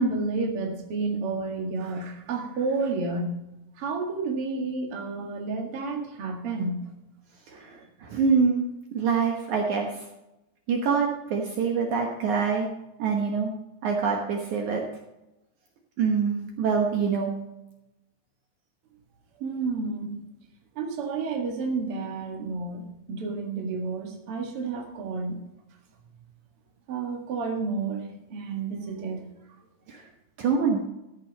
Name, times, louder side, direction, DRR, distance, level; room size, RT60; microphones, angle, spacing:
voice 1, 0.0-3.3 3.8-6.9 7.5-7.6 19.4-20.2 20.7-25.4 26.9-29.2, right 3 dB, 60° right, 2 dB, 1.4 m, -30 dB
voice 2, 8.0-8.6 8.9-9.9 10.7-12.7 13.0-13.5 13.8-14.8 16.0-17.3 29.9-30.0 30.4-30.8, right 5 dB, 90° right, 1 dB, 1.7 m, -25 dB
13.5 x 8.6 x 4.1 m, 0.92 s
omnidirectional pair, 5.5 m